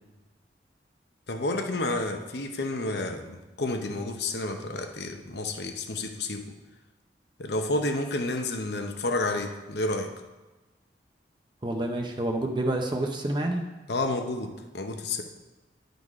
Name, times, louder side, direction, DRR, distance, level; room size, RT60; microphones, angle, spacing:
voice 1, 1.3-6.5 7.4-10.1 13.9-15.2, left 2 dB, 65° left, 5 dB, 0.8 m, -30 dB
voice 2, 11.6-13.6, right 1 dB, 25° right, 2 dB, 0.6 m, -28 dB
11.0 x 4.0 x 4.8 m, 1.2 s
head